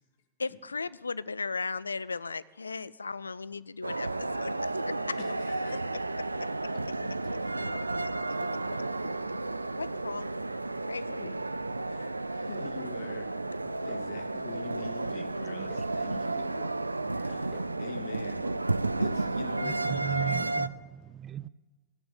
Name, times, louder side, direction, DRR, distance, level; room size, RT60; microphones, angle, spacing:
voice 1, 0.4-5.2 5.7-6.0 9.8-11.4, left 4 dB, 75° left, 19 dB, 0.4 m, -37 dB
sound 1, 3.8-20.7, right 2 dB, 85° right, 0.4 m, -32 dB
voice 2, 5.2-5.8 7.2-7.4 7.6-8.0 8.4-8.5 11.2-11.3 11.9-13.3 13.7-16.7 17.2-18.5 19.0-20.4, left 6 dB, 55° left, 6 dB, 1.9 m, -45 dB
sound 2, 13.7-14.1 14.3-14.9 15.2-15.9 16.2-16.7 17.1-17.7 18.0-18.2 18.4-18.5 18.9-19.0, left 1 dB, 10° left, 1.9 m, -51 dB
voice 3, 19.6-21.5, right 12 dB, 25° right, 19 dB, 0.5 m, -36 dB
15.0 x 8.7 x 8.3 m, 1.3 s
figure-of-eight pair, 90°, 0 cm